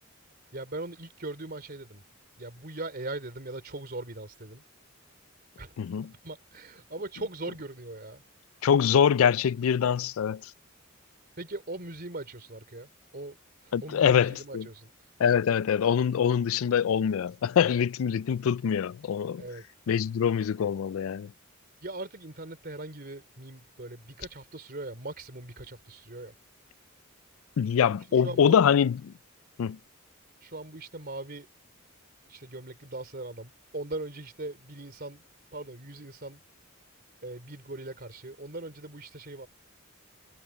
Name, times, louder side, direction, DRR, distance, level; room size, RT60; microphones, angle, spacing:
voice 1, 0.5-2.0 2.4-4.6 5.6-5.8 6.2-8.2 11.4-13.4 13.6-14.9 19.4-19.6 21.8-26.3 28.2-28.6 30.4-31.5 32.3-35.2 35.5-36.4 37.2-39.5, right 2 dB, 45° right, 3.4 m, -40 dB
voice 2, 5.8-6.1 8.6-10.5 13.7-14.7 15.2-19.4 19.9-21.3 27.6-29.1 29.6-29.8, left 8 dB, 75° left, 0.3 m, -24 dB
head